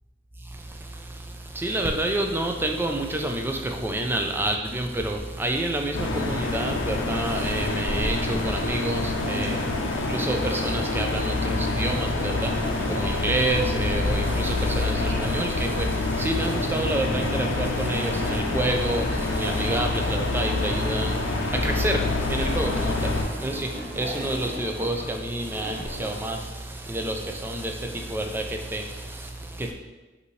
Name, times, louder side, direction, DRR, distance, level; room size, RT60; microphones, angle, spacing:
voice 1, 0.4-29.7, right 1 dB, 10° right, 3 dB, 0.3 m, -29 dB
sound 1, 5.9-23.2, left 2 dB, 80° left, 0.5 m, -27 dB
sound 2, 8.1-25.1 25.5-26.2, equal, 60° right, 0.7 m, -37 dB
5.3 x 2.7 x 3.1 m, 1.1 s
head